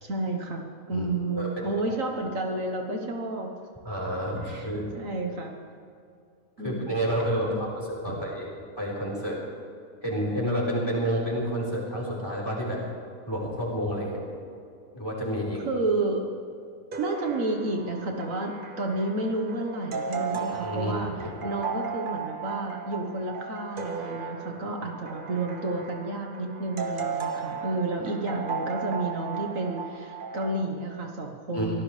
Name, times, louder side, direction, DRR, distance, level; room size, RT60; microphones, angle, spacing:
voice 1, 0.0-3.6 4.4-4.7 4.9-5.5 6.6-6.9 7.5-7.6 8.1-8.2 15.7-16.2 17.0-21.1 21.4-31.8, right 2 dB, 65° right, 2 dB, 1.7 m, -31 dB
voice 2, 3.8-4.9 6.6-9.4 10.0-12.8 13.3-14.2 14.9-15.6 20.5-21.3 31.5-31.7, equal, 15° left, -4 dB, 4.4 m, -29 dB
sound 1, 16.9-30.6, right 5 dB, 40° right, 1.2 m, -35 dB
24.0 x 16.5 x 3.4 m, 2.4 s
omnidirectional pair, 1.5 m